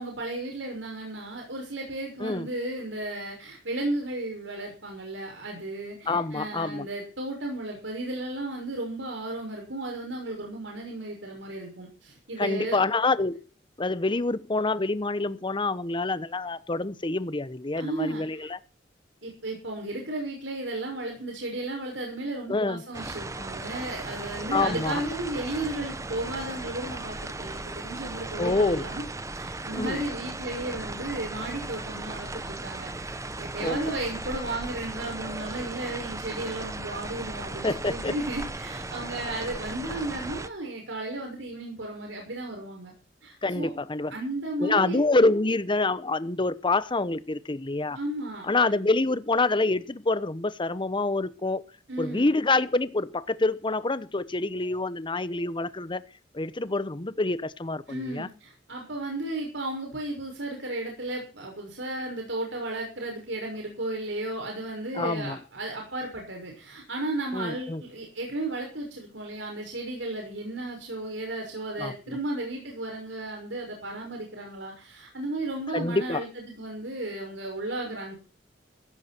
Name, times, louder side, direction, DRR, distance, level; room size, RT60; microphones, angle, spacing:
voice 1, 0.0-12.9 17.8-18.5 19.2-29.0 29.3-42.9 43.2-43.7 44.1-45.0 47.9-48.5 51.9-52.3 57.9-78.2, right 2 dB, 75° right, 1 dB, 6.4 m, -34 dB
voice 2, 6.1-6.9 12.4-13.4 13.8-18.6 22.5-22.8 24.5-25.0 28.4-28.9 29.7-30.0 33.6-33.8 37.6-38.1 43.4-44.1 44.6-48.0 48.4-51.6 52.0-56.0 56.3-58.3 64.9-65.4 67.3-67.8 71.8-72.2 75.7-76.2, left 2 dB, 25° left, 15 dB, 0.9 m, -26 dB
sound 1, 22.9-40.5, right 2 dB, 15° right, 0.9 m, -37 dB
16.0 x 14.0 x 4.5 m, 0.34 s
head